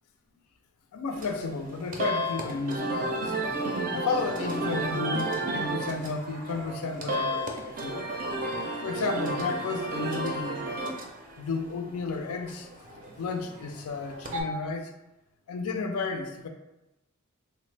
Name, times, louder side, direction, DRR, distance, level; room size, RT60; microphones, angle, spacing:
voice 1, 0.9-3.4 3.9-8.1 8.8-10.6 11.4-12.7 13.2-14.9 15.5-16.5, left 4 dB, 75° left, 6 dB, 0.4 m, -32 dB
sound 1, 1.1-14.4, right 1 dB, 40° right, 0.4 m, -33 dB
3.2 x 2.0 x 3.1 m, 0.95 s
head